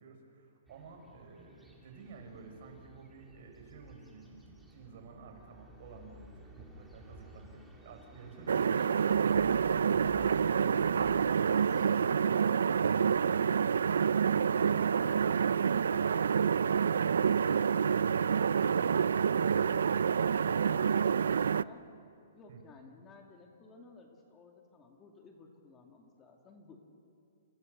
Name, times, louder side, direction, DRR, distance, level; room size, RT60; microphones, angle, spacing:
voice 1, 0.0-9.5 22.5-22.6, right 4 dB, 50° right, 4 dB, 5.8 m, -52 dB
sound 1, 0.7-12.1, equal, 5° right, 2.5 m, -55 dB
sound 2, 8.5-21.6, right 7 dB, 90° right, 0.5 m, -28 dB
voice 2, 22.3-26.8, left 4 dB, 15° left, 2 dB, 2.4 m, -55 dB
29.0 x 29.0 x 6.7 m, 2.4 s
hypercardioid pair, 165°, 0 cm